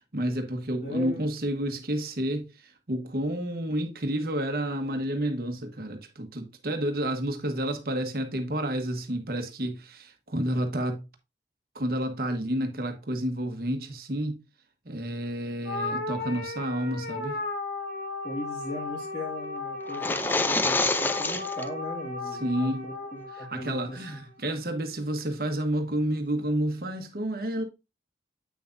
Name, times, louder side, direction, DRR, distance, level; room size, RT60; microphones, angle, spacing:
voice 1, 0.1-2.5 2.9-11.0 11.7-14.4 14.8-17.4 22.4-22.9 23.4-27.6, right 1 dB, 55° right, 1.2 m, -30 dB
voice 2, 0.8-1.2 18.2-24.0, equal, 40° left, 1.9 m, -38 dB
sound 1, 15.6-24.2, left 3 dB, 75° left, 1.8 m, -35 dB
sound 2, 19.9-21.7, left 2 dB, 10° left, 0.4 m, -26 dB
8.4 x 5.9 x 2.6 m
head